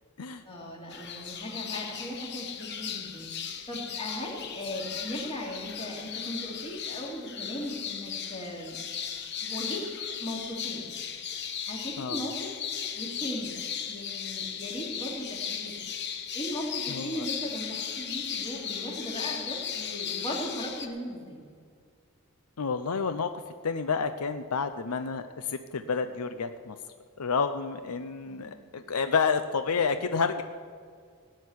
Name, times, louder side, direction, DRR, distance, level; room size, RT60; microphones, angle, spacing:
voice 1, 0.4-3.3 3.7-8.8 9.4-9.9 10.2-10.9 11.6-12.6 12.9-13.5 13.8-15.8 16.3-21.4 28.2-28.5, equal, 25° left, -3 dB, 2.8 m, -37 dB
sound 1, 0.9-20.9, left 8 dB, 50° left, 1.0 m, -36 dB
voice 2, 16.9-17.3 22.6-23.3 23.6-26.8 27.2-30.4, left 5 dB, 85° left, 10 dB, 0.6 m, -29 dB
17.0 x 6.6 x 9.7 m, 2.1 s
head